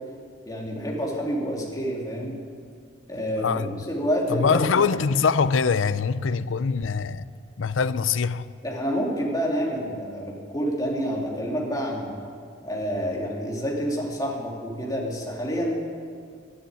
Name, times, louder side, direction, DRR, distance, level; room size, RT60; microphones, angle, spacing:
voice 1, 0.5-2.3 3.1-4.8 8.6-12.2 12.6-15.7, equal, 20° left, 2.9 m, -28 dB
voice 2, 3.4-3.8 4.3-7.3 7.6-8.5, left 5 dB, 80° left, 0.5 m, -23 dB
12.5 x 11.0 x 9.5 m
head